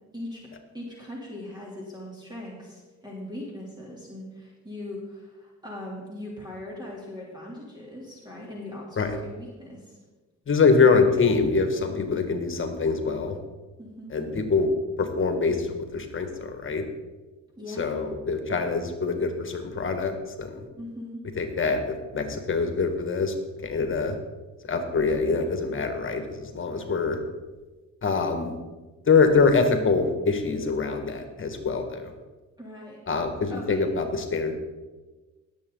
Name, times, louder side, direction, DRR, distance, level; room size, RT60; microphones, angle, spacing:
voice 1, 0.1-0.5 0.7-10.0 13.8-14.1 17.6-18.1 20.8-21.2 32.6-33.0 33.5-33.9, left 1 dB, 15° right, -4 dB, 3.2 m, -40 dB
voice 2, 10.5-13.4 14.1-14.7 15.0-16.8 17.8-20.6 21.4-23.3 23.6-24.2 24.7-27.2 28.0-28.5 29.1-32.1 33.1-34.6, left 4 dB, 40° left, 6 dB, 1.8 m, -24 dB
18.5 x 7.7 x 4.0 m, 1.2 s
cardioid pair, 90°, 30 cm